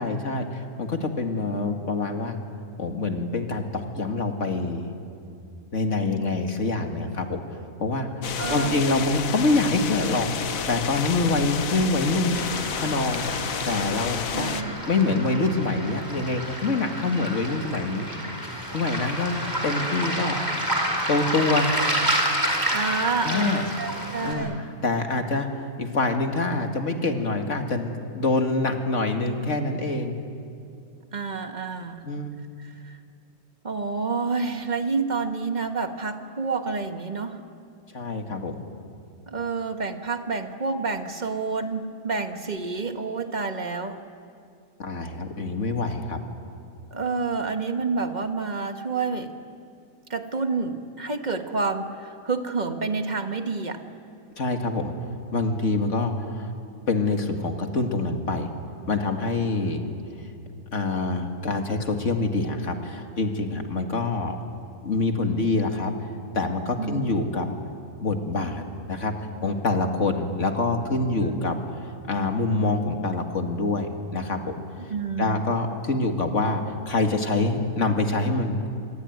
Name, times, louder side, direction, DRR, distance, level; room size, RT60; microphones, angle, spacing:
voice 1, 0.0-2.4 2.8-4.9 5.7-7.4 7.8-8.1 8.5-10.3 10.7-12.4 12.8-13.2 13.7-18.1 18.7-20.4 21.1-21.7 23.2-23.7 24.2-30.1 32.0-32.3 37.9-38.6 44.8-46.2 54.4-54.9 55.3-56.5 56.9-58.5 58.9-59.8 60.7-64.4 64.8-65.9 66.3-67.5 68.0-69.1 69.4-71.6 72.0-74.5 75.2-78.7, left 3 dB, 55° left, 4 dB, 2.5 m, -25 dB
sound 1, 8.2-14.6, left 8 dB, 70° left, 1.4 m, -30 dB
voice 2, 8.4-8.9 14.3-14.8 22.7-24.7 31.1-32.1 32.6-33.0 33.6-37.4 39.3-44.0 46.9-49.3 50.1-53.8 66.8-67.0 71.2-71.4 74.9-75.5, right 4 dB, 30° right, 6 dB, 1.7 m, -29 dB
Waves surf, 12.3-24.3, right 1 dB, 15° right, 4.6 m, -29 dB
26.0 x 23.0 x 9.5 m, 2.5 s
omnidirectional pair, 1.5 m